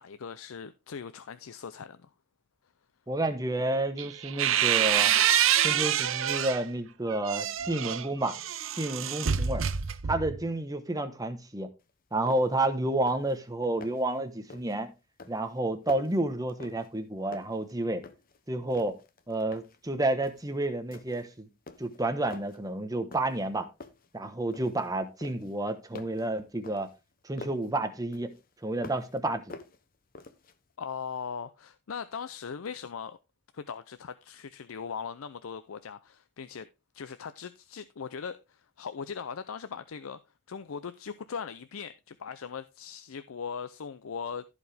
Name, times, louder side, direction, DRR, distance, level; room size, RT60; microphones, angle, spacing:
voice 1, 0.0-2.1 30.8-33.2 33.5-36.7 36.9-40.2 40.5-44.4, left 6 dB, 90° left, 0.5 m, -39 dB
voice 2, 3.1-5.1 5.6-8.3 8.7-9.6 10.1-11.7 12.1-14.9 15.3-18.0 18.5-18.9 19.3-21.5 21.8-23.7 24.1-26.9 27.2-28.3 28.6-29.6, right 2 dB, 20° right, 1.1 m, -30 dB
sound 1, 4.0-6.6 7.1-10.4, right 9 dB, 75° right, 0.7 m, -27 dB
sound 2, 11.8-11.9 12.3-12.7 12.9-13.4 13.6-14.1 14.5-14.8 15.2-17.0 17.3-18.4 18.7-19.8 20.2-20.5 20.9-21.3 21.7-22.6 23.1-23.5 23.8-24.9 25.2-27.7 28.1-29.2 29.5-30.6, left 3 dB, 45° left, 0.9 m, -48 dB
14.5 x 4.9 x 3.4 m
head